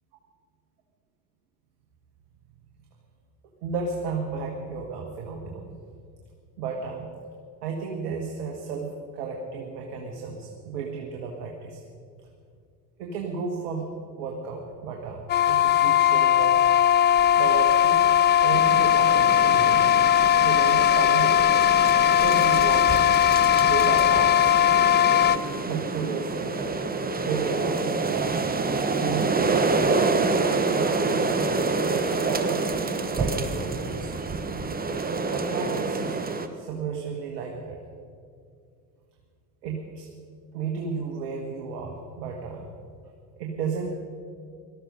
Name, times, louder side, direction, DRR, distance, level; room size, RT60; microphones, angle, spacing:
voice 1, 3.6-5.7 6.6-7.1 7.6-11.8 13.0-16.6 17.3-18.0 18.4-19.9 20.4-21.4 22.1-23.0 23.6-24.7 25.6-26.8 27.2-28.4 29.0-30.2 30.7-32.6 33.1-34.1 35.3-36.2 36.5-37.8 39.6-40.1 40.5-42.7 43.4-43.9, right 5 dB, 70° right, 1 dB, 1.8 m, -33 dB
sound 1, 15.3-25.4, left 10 dB, 25° left, 0.4 m, -19 dB
sound 2, 18.5-36.5, right 3 dB, 20° right, 1.3 m, -27 dB
18.5 x 13.0 x 5.4 m, 2.3 s
hypercardioid pair, 65°, 49 cm